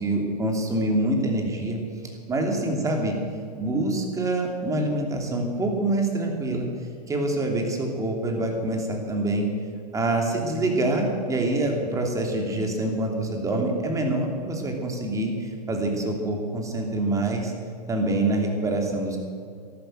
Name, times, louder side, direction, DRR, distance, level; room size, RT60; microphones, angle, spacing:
voice 1, 0.0-1.8 2.3-3.2 3.6-6.7 7.1-9.5 9.9-17.5 17.9-19.2, right 2 dB, 15° right, 2 dB, 2.9 m, -25 dB
14.0 x 11.5 x 7.8 m, 2.4 s
hypercardioid pair, 125°, 21 cm